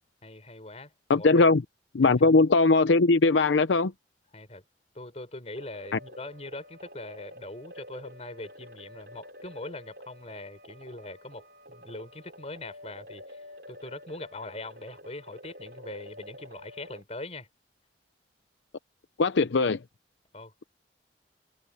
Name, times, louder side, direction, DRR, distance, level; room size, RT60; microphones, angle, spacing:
voice 1, 0.2-1.5 2.0-2.3 4.3-4.6 4.9-17.5 20.3-20.7, left 2 dB, 35° left, 5.3 m, -42 dB
voice 2, 1.1-1.6 1.9-3.9 5.9-6.0 19.2-19.8, left 3 dB, 85° left, 0.6 m, -20 dB
sound 1, 5.5-17.0, equal, 60° right, 5.5 m, -49 dB
head